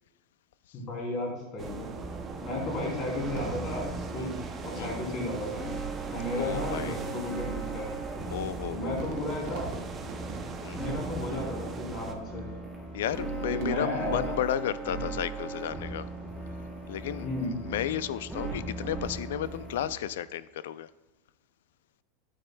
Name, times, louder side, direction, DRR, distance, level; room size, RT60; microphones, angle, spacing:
voice 1, 0.7-1.9 2.4-5.6 6.1-7.9 8.7-9.7 10.7-12.4 13.4-14.3 14.8-15.0 17.2-17.6, left 1 dB, 30° left, -2 dB, 3.0 m, -34 dB
sound 1, 1.6-12.1, right 5 dB, 15° right, 0.6 m, -41 dB
sound 2, 1.9-19.9, right 3 dB, ahead, 1.0 m, -38 dB
Fireworks, 3.4-5.0 5.8-5.9 6.6-11.9 12.9-14.7 15.3-15.8, right 4 dB, 45° right, 1.0 m, -45 dB
voice 2, 6.3-7.0 8.3-9.1 10.6-10.9 12.9-16.1 16.9-20.9, left 11 dB, 85° left, 16 dB, 0.4 m, -33 dB
11.5 x 8.8 x 2.2 m, 1.2 s
supercardioid pair, 180°, 0 cm